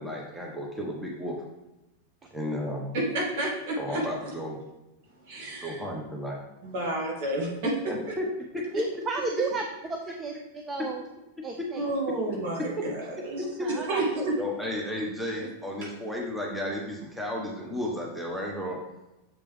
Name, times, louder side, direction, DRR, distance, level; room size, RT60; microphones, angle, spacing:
voice 1, 0.0-1.4 2.3-2.9 3.8-4.6 5.6-6.4 7.9-8.3 8.5-8.7 11.4-11.7 12.8-12.9 13.6-13.7 14.4-18.8, left 1 dB, 5° right, -2 dB, 1.3 m, -33 dB
voice 2, 2.9-4.1 5.3-5.8 6.6-7.9 11.8-14.4, right 2 dB, 50° right, -2 dB, 2.4 m, -30 dB
voice 3, 8.7-9.6 9.9-10.3 10.7-11.0 11.4-11.8 13.6-14.1, right 3 dB, 20° right, 2 dB, 0.7 m, -32 dB
7.1 x 5.2 x 3.4 m, 0.98 s
figure-of-eight pair, 90°, 0 cm